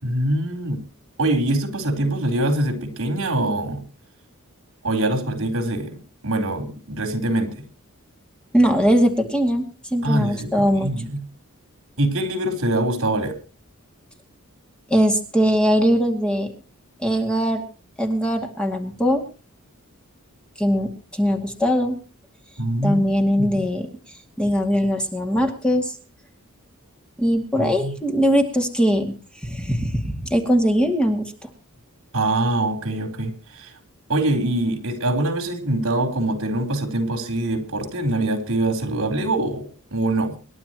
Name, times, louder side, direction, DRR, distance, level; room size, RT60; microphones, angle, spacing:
voice 1, 0.0-0.8 1.2-3.8 4.8-7.6 10.0-11.2 12.0-13.4 22.6-23.7 27.6-28.0 32.1-33.7 34.1-40.3, right 1 dB, 65° right, 5 dB, 4.2 m, -24 dB
voice 2, 8.5-10.9 14.9-16.5 17.0-17.6 18.0-19.2 20.6-22.0 22.8-23.9 24.4-25.9 27.2-29.1 29.4-31.3, equal, 5° left, 2 dB, 2.4 m, -20 dB
26.5 x 11.5 x 3.1 m, 0.35 s
head